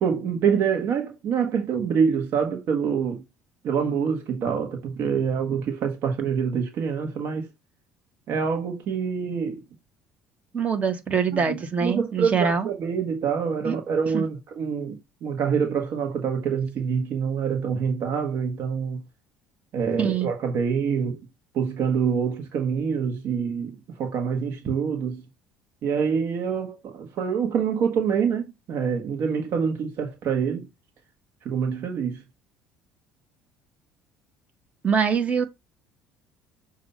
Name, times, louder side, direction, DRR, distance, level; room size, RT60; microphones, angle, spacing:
voice 1, 0.0-3.2 3.6-7.5 8.3-9.6 11.5-19.0 19.7-21.2 21.5-25.2 25.8-30.7 31.4-32.2, right 6 dB, 60° right, 1.3 m, -26 dB
voice 2, 10.5-12.7 13.6-13.8 14.1-14.2 20.0-20.3 34.8-35.4, right 6 dB, 35° right, 1.5 m, -24 dB
6.7 x 2.7 x 5.5 m
supercardioid pair, 85°, 4 cm